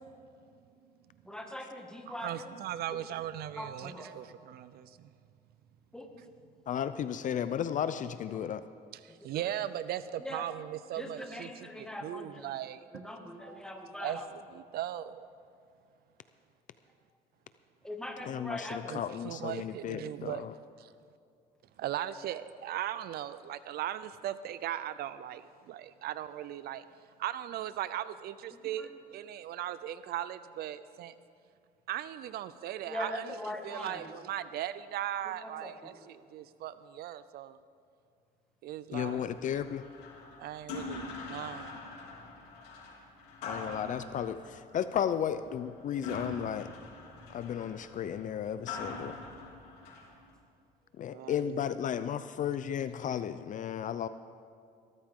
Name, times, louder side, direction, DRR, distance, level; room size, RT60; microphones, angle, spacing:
voice 1, 1.2-2.5 2.9-3.0 3.6-4.1 5.9-6.1 8.4-8.5 9.3-9.4 10.2-10.4 11.0-12.5 12.9-14.3 17.8-19.0 28.5-28.9 32.9-34.1 35.4-36.0, left 1 dB, 5° left, 2 dB, 2.0 m, -41 dB
voice 2, 2.1-4.9 9.2-11.7 12.0-12.8 13.4-13.6 14.0-14.2 14.5-15.2 18.9-20.4 21.8-26.8 27.2-31.1 31.9-33.4 33.6-37.6 38.6-39.3 40.4-41.7 51.1-51.4, right 12 dB, 70° right, 15 dB, 0.5 m, -38 dB
voice 3, 6.7-8.6 18.2-20.5 38.9-39.8 43.4-46.7 47.3-49.2 51.0-54.1, left 9 dB, 50° left, 12 dB, 0.5 m, -34 dB
sound 1, 39.0-50.3, left 3 dB, 85° left, 3.4 m, -44 dB
20.5 x 13.5 x 3.7 m, 2.4 s
cardioid pair, 110°, 17 cm